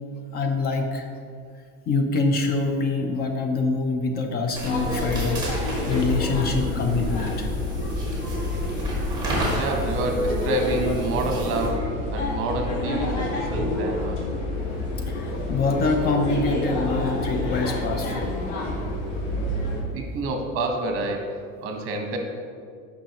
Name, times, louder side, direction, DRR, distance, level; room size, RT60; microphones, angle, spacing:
voice 1, 0.3-1.1 1.9-7.5 15.1-18.3, left 3 dB, 35° left, 5 dB, 0.5 m, -25 dB
sound 1, 4.5-11.7, right 1 dB, 15° right, 1.8 m, -32 dB
sound 2, 4.6-19.8, left 1 dB, 80° left, 1.6 m, -28 dB
voice 2, 9.5-14.2 18.5-18.6 19.9-22.2, right 2 dB, 50° right, 3 dB, 1.0 m, -28 dB
8.9 x 5.7 x 2.9 m, 2.3 s
cardioid pair, 160°, 29 cm